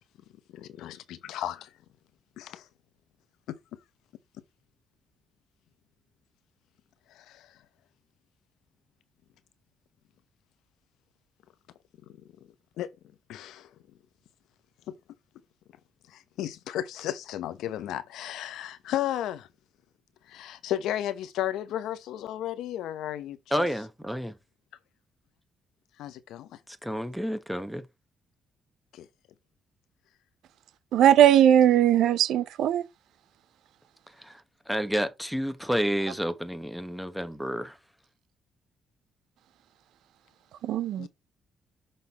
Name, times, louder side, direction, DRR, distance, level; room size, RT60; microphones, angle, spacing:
voice 1, 0.5-1.7 2.4-2.7 3.5-3.6 7.1-7.6 12.8-12.9 13.3-13.7 14.9-15.0 16.1-19.5 20.3-23.7 26.0-26.6 28.9-29.1 41.0-41.1, left 12 dB, 85° left, 0.9 m, -34 dB
voice 2, 23.5-24.3 26.7-27.8 34.2-34.4 34.7-37.8, equal, ahead, 1.1 m, -30 dB
voice 3, 30.9-32.8 40.6-41.1, right 11 dB, 80° right, 0.6 m, -19 dB
6.4 x 4.0 x 4.1 m
cardioid pair, 90°, 0 cm